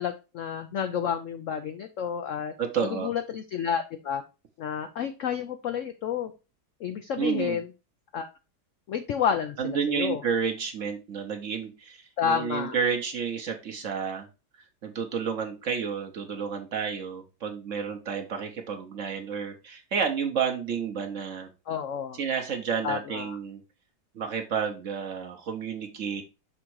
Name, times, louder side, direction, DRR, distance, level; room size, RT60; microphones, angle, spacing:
voice 1, 0.0-2.5 2.8-4.2 4.6-6.3 6.8-7.7 8.1-8.3 8.9-10.2 12.2-12.8 21.7-22.2 22.8-23.4, left 8 dB, 80° left, 8 dB, 0.7 m, -30 dB
voice 2, 2.6-3.1 7.1-7.6 9.6-14.3 14.8-21.5 22.1-23.6 24.1-26.2, right 6 dB, 55° right, 4 dB, 1.0 m, -30 dB
6.1 x 3.6 x 4.6 m, 0.29 s
omnidirectional pair, 2.0 m